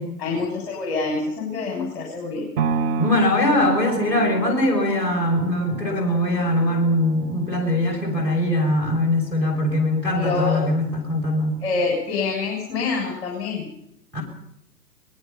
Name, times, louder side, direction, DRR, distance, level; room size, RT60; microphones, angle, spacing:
voice 1, 0.2-2.5 10.1-10.6 11.6-13.7, left 4 dB, 35° left, 0 dB, 7.1 m, -26 dB
sound 1, 2.6-10.7 11.1-11.2, right 5 dB, 30° right, 1.3 m, -32 dB
voice 2, 3.0-11.6 14.1-14.2, left 1 dB, 5° left, -4 dB, 6.8 m, -21 dB
23.5 x 20.5 x 5.8 m, 0.76 s
hypercardioid pair, 145°, 49 cm